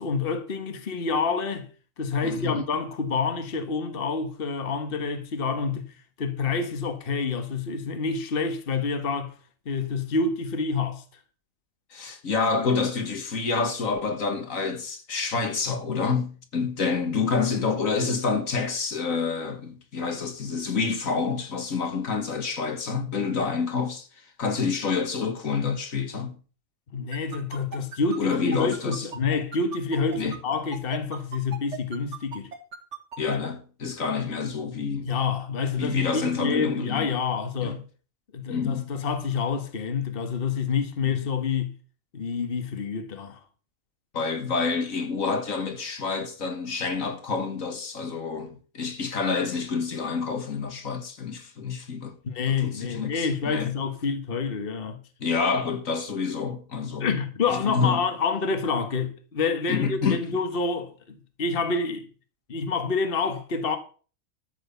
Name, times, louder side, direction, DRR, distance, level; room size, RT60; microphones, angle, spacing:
voice 1, 0.0-1.7 2.0-5.9 6.2-9.3 9.6-11.0 26.9-32.5 35.0-37.8 38.3-41.7 42.1-43.4 52.2-55.0 57.0-62.1 62.5-63.8, left 5 dB, 45° left, 1.5 m, -28 dB
voice 2, 2.2-2.6 11.9-24.1 24.4-26.4 28.2-29.1 30.1-30.4 33.2-35.1 35.8-37.1 37.6-37.8 38.5-38.9 44.1-52.2 52.5-53.7 55.2-57.1 57.5-58.0 59.7-60.2, left 5 dB, 70° left, 2.1 m, -28 dB
sound 1, 27.1-33.4, right 6 dB, 55° right, 2.0 m, -37 dB
13.5 x 6.2 x 6.9 m
omnidirectional pair, 1.4 m